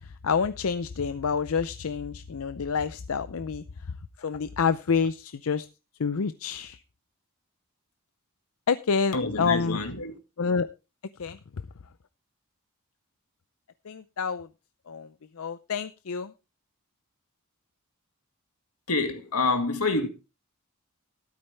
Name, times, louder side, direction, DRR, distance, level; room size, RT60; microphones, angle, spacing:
voice 1, 0.2-3.6 4.2-5.7 6.0-6.8 8.7-9.8 10.4-10.7 11.2-11.4 13.9-14.5 14.9-15.1 15.4-16.3, left 5 dB, 70° left, 0.5 m, -28 dB
voice 2, 9.1-10.1 18.9-20.1, left 3 dB, 90° left, 2.1 m, -27 dB
13.0 x 12.0 x 3.3 m
head